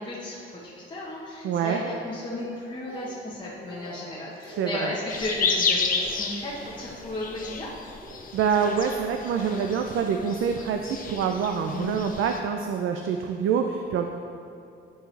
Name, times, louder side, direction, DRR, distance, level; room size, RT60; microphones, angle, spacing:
voice 1, 0.0-7.7, left 1 dB, 20° left, -6 dB, 0.9 m, -34 dB
voice 2, 1.4-1.8 4.6-4.9 8.3-14.1, right 7 dB, 80° right, 4 dB, 0.4 m, -26 dB
Speech, 2.4-3.4 3.7-4.1 4.4-4.8 5.2-5.5 5.9-6.2 6.5-6.9 7.3-7.6 8.0-8.8 9.6-9.8, right 1 dB, 30° right, 0.9 m, -46 dB
sound 1, 5.1-12.4, left 4 dB, 45° left, 0.6 m, -31 dB
10.0 x 4.6 x 3.2 m, 2.6 s
cardioid pair, 130°, 21 cm